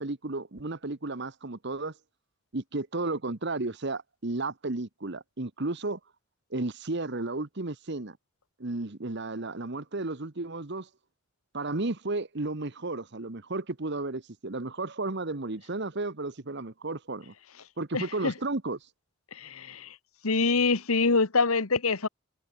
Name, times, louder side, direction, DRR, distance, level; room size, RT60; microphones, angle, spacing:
voice 1, 0.0-1.9 2.5-6.0 6.5-8.2 8.6-10.9 11.5-17.3 17.8-18.8, right 2 dB, 55° right, 1.2 m, -33 dB
voice 2, 17.9-18.3 19.3-19.9 20.2-22.1, left 4 dB, 85° left, 1.5 m, -25 dB
head